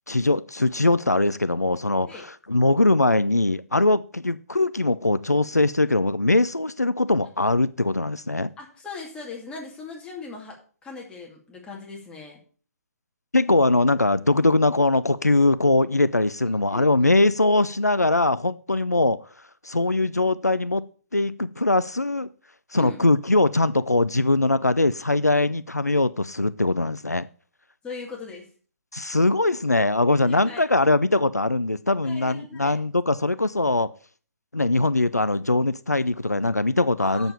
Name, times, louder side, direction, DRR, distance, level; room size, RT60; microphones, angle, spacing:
voice 1, 0.1-2.1 2.5-8.5 13.3-19.2 19.6-20.8 21.1-22.3 22.7-27.3 28.9-33.9 34.5-37.3, left 2 dB, 90° left, 0.5 m, -21 dB
voice 2, 8.6-12.4 16.5-17.1 22.8-23.0 27.8-28.5 30.2-30.7 32.0-32.8 37.0-37.3, left 4 dB, 10° left, 2.5 m, -39 dB
7.7 x 7.0 x 6.9 m
figure-of-eight pair, 130°, 9 cm